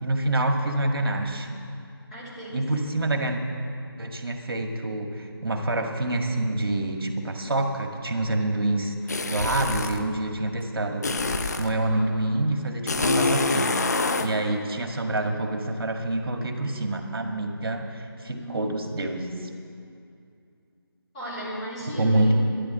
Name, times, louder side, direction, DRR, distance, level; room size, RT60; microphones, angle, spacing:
voice 1, 0.0-1.6 2.5-3.4 4.0-11.1 11.6-13.8 14.2-19.5 21.9-22.3, right 2 dB, 65° right, 3 dB, 1.8 m, -27 dB
voice 2, 2.1-2.6 11.6-12.1 18.3-18.9 21.1-22.3, equal, 15° left, -9 dB, 3.9 m, -36 dB
sound 1, 9.1-10.0 11.0-11.7 12.9-14.3, left 3 dB, 40° left, 0.8 m, -25 dB
13.5 x 10.5 x 8.0 m, 2.5 s
figure-of-eight pair, 170°, 13 cm